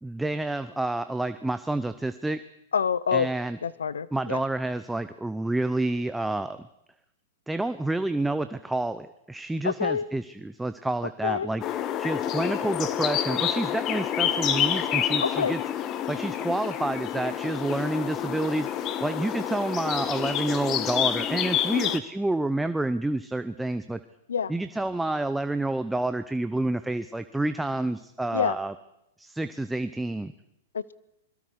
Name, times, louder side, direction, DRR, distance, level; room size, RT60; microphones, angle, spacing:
voice 1, 0.0-2.4 3.1-3.6 4.1-6.6 7.5-11.6 12.0-15.6 16.1-18.7 19.0-24.0 24.5-28.7 29.2-30.3, right 2 dB, 5° right, 11 dB, 0.7 m, -29 dB
voice 2, 2.7-3.3 3.6-4.4 9.6-10.1 11.2-11.5 15.2-15.5 21.7-22.0 24.3-24.5 28.3-28.5 30.7-30.9, left 7 dB, 85° left, 19 dB, 0.8 m, -27 dB
sound 1, 11.6-22.0, left 10 dB, 35° left, 1.5 m, -28 dB
27.5 x 21.5 x 4.8 m, 0.82 s
hypercardioid pair, 120°, 0 cm